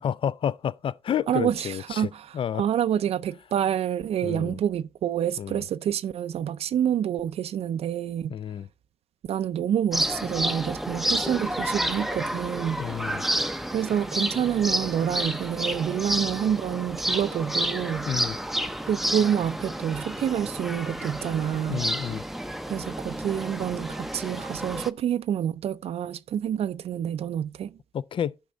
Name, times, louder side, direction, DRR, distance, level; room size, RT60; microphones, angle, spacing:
voice 1, 0.0-2.6 4.2-4.6 5.4-5.6 8.3-8.7 12.8-13.2 18.1-18.4 21.7-22.2 27.9-28.4, left 9 dB, 55° left, 0.4 m, -30 dB
voice 2, 1.3-8.4 9.3-12.8 13.7-18.1 18.9-21.8 22.7-27.7, right 9 dB, 75° right, 0.4 m, -27 dB
sound 1, 9.9-24.9, right 1 dB, 5° right, 0.6 m, -30 dB
11.5 x 5.3 x 3.8 m
cardioid pair, 105°, 10 cm